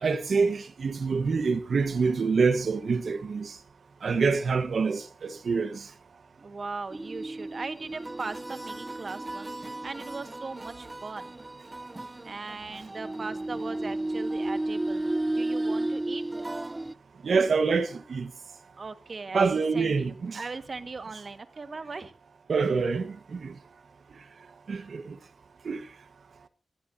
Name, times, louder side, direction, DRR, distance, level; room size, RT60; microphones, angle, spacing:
voice 1, 0.0-3.5 4.0-5.8 17.2-18.3 19.3-20.4 22.5-23.5 24.7-25.2 25.6-25.8, right 4 dB, 80° right, 1.2 m, -26 dB
voice 2, 6.4-11.3 12.2-16.2 18.8-22.1, right 4 dB, 60° right, 1.6 m, -39 dB
sound 1, 6.9-16.9, right 2 dB, 25° right, 0.7 m, -33 dB
24.5 x 15.5 x 2.7 m
cardioid pair, 60°, 0 cm